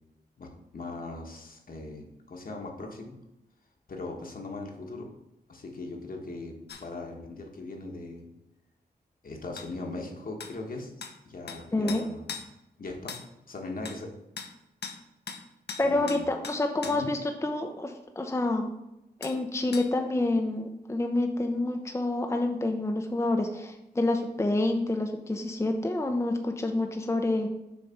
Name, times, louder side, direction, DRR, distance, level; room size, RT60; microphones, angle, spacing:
voice 1, 0.4-3.1 3.9-5.1 5.5-6.5 6.8-8.3 9.2-10.9 11.3-12.4 12.8-13.1 13.5-14.1 15.8-16.2 16.8-17.1, left 2 dB, 55° left, 1 dB, 1.3 m, -39 dB
sound 1, 6.7-6.8 9.6-9.7 10.4-10.5 11.0-11.1 11.5-11.6 11.9-12.5 13.1-13.3 13.8-14.0 14.4-14.5 14.8-15.0 15.3-15.4 15.7-17.0 19.2-19.4 19.7-19.9, left 5 dB, 75° left, 0.8 m, -39 dB
voice 2, 11.7-12.0 15.8-18.7 19.2-27.5, left 2 dB, 15° left, 4 dB, 0.6 m, -28 dB
6.5 x 3.3 x 5.7 m, 0.90 s
cardioid pair, 70°, 17 cm